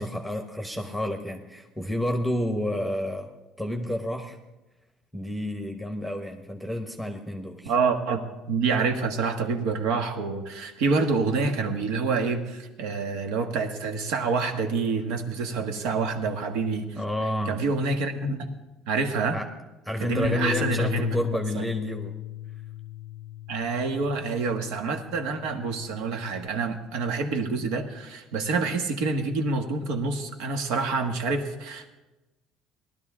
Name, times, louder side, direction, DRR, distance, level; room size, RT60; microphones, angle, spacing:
voice 1, 0.0-3.3 3.6-4.4 5.1-7.7 17.0-17.6 19.3-19.5 19.8-22.1 24.4-24.7, equal, 5° right, 4 dB, 0.9 m, -30 dB
voice 2, 7.6-17.0 17.4-18.5 18.9-19.4 20.0-21.1 21.5-21.6 23.5-31.9, right 4 dB, 85° right, 5 dB, 1.5 m, -27 dB
Bass guitar, 20.2-26.5, left 14 dB, 55° left, 0.5 m, -36 dB
19.0 x 12.0 x 3.7 m, 1.1 s
cardioid pair, 145°, 0 cm